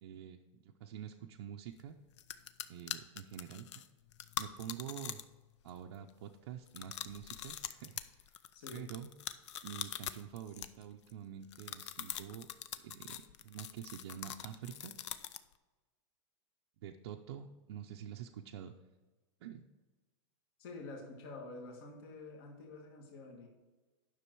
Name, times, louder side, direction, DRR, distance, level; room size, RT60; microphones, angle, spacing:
voice 1, 0.0-2.0 2.7-3.8 4.4-5.2 5.6-8.2 8.7-9.1 9.6-12.5 12.7-14.9 16.8-18.7 19.4-19.7, right 9 dB, 50° right, 1 dB, 0.6 m, -47 dB
sound 1, 1.8-1.9 2.2-5.4 5.7-6.1 6.7-11.1 11.5-15.5, left 11 dB, 65° left, 0.6 m, -43 dB
voice 2, 8.5-8.9 20.6-23.5, left 3 dB, 45° left, 1 dB, 1.7 m, -48 dB
10.0 x 6.2 x 4.6 m, 1.2 s
supercardioid pair, 175°, 16 cm